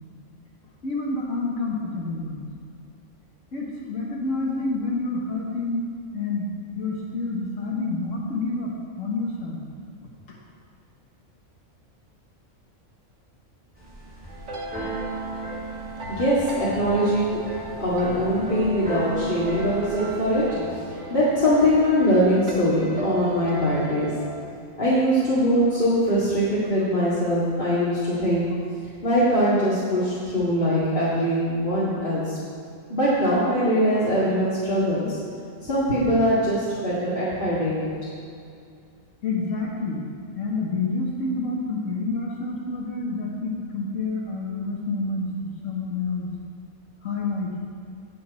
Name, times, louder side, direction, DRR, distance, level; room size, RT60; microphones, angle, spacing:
voice 1, 0.8-2.4 3.5-5.9 6.1-6.5 6.8-8.7 9.0-9.6 10.3-10.4 18.5-18.6 24.2-24.3 28.1-28.2 31.5-31.6 39.2-40.0 40.4-45.3 45.6-46.3 47.0-47.6, left 3 dB, 70° left, -5 dB, 1.8 m, -28 dB
Keyboard (musical), 13.8-20.5, right 3 dB, 5° right, 2.5 m, -36 dB
sound 1, 14.3-24.4, equal, 65° right, 1.6 m, -36 dB
voice 2, 16.1-17.4 17.8-24.1 24.8-28.5 29.0-32.4 32.9-35.2 35.6-37.9, equal, 40° left, -10 dB, 2.4 m, -22 dB
18.5 x 6.7 x 4.3 m, 2.4 s
omnidirectional pair, 1.4 m